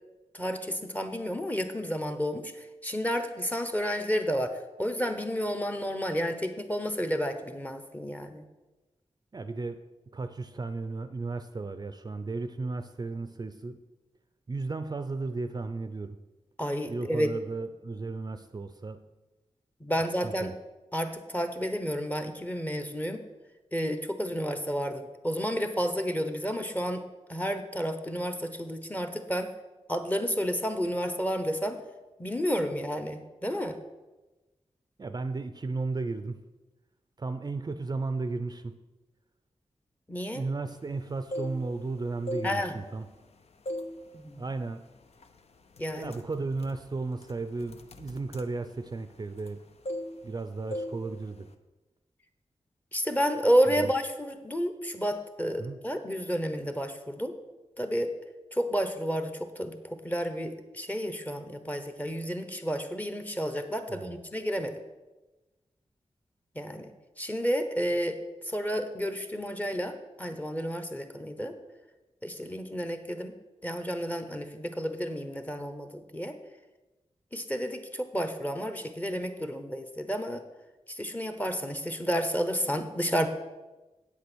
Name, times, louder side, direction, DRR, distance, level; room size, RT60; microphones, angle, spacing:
voice 1, 0.3-8.4 16.6-17.3 19.8-20.5 20.9-23.2 23.7-27.0 27.3-29.5 29.9-31.8 32.2-33.8 40.1-40.4 42.4-42.8 44.1-44.4 45.8-46.1 52.9-57.4 57.8-58.1 58.5-64.7 66.5-66.9 67.2-68.2 68.4-71.5 72.2-73.3 73.6-76.4 77.3-80.4 81.0-83.3, equal, 15° left, 8 dB, 1.0 m, -31 dB
voice 2, 9.3-9.8 10.1-13.8 14.5-16.2 16.9-19.0 20.2-20.5 35.0-36.4 37.2-38.8 40.3-43.1 44.4-44.8 46.0-49.6 50.2-51.5 53.7-53.9 55.6-55.8 63.9-64.2, right 3 dB, 35° right, 10 dB, 0.5 m, -34 dB
sound 1, 41.1-41.9 42.2-43.3 43.7-44.0 44.4-44.6 45.2-45.4 45.7-49.6 49.8-50.4 50.7-51.0 51.3-51.5, left 1 dB, 65° left, 0.7 m, -38 dB
8.5 x 8.2 x 6.2 m, 1.1 s
wide cardioid pair, 100°, 12 cm